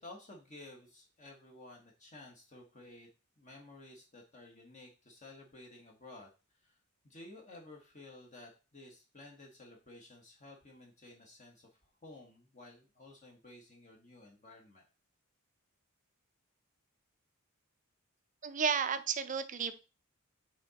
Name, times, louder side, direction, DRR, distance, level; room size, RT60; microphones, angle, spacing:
voice 1, 0.0-3.1 3.4-6.3 6.6-6.8 7.0-11.7 12.0-14.8, left 2 dB, 35° left, 1 dB, 1.3 m, -53 dB
voice 2, 18.4-19.7, right 6 dB, 35° right, 11 dB, 0.5 m, -32 dB
8.6 x 3.7 x 4.1 m, 0.32 s
head